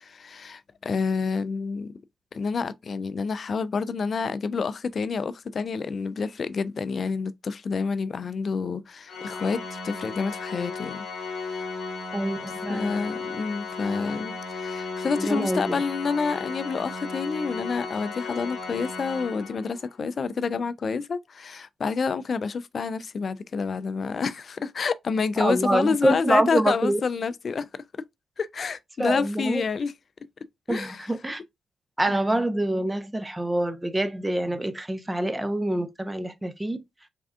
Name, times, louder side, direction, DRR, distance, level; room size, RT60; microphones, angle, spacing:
voice 1, 0.0-1.9 2.3-11.0 11.5-11.7 12.7-27.7 28.4-29.9 30.7-31.1 32.1-32.2, left 5 dB, 55° left, 0.3 m, -28 dB
Organ, 9.1-19.9, left 4 dB, 80° left, 1.0 m, -35 dB
voice 2, 12.1-13.0 15.2-15.8 25.4-27.0 29.0-29.6 30.7-31.4 32.0-36.8, right 1 dB, 15° right, 0.6 m, -26 dB
3.4 x 2.3 x 2.4 m
supercardioid pair, 50°, 0 cm